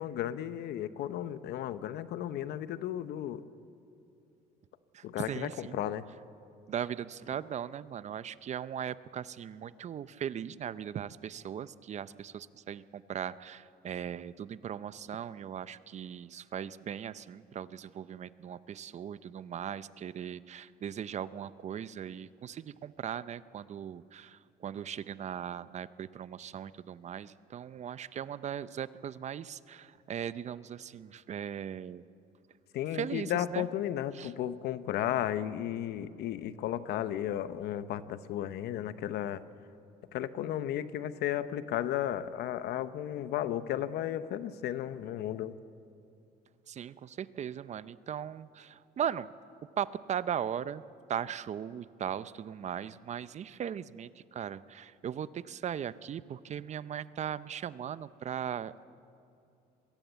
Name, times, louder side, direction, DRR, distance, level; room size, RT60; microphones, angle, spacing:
voice 1, 0.0-3.4 5.0-6.0 32.7-39.4 40.1-45.5, left 11 dB, 75° left, 13 dB, 0.9 m, -34 dB
voice 2, 4.9-5.8 6.7-32.0 32.9-33.7 34.1-34.3 46.7-49.3 49.8-50.8 51.1-58.8, right 9 dB, 45° right, 16 dB, 0.6 m, -38 dB
22.0 x 16.0 x 8.1 m, 2.6 s
cardioid pair, 110°, 17 cm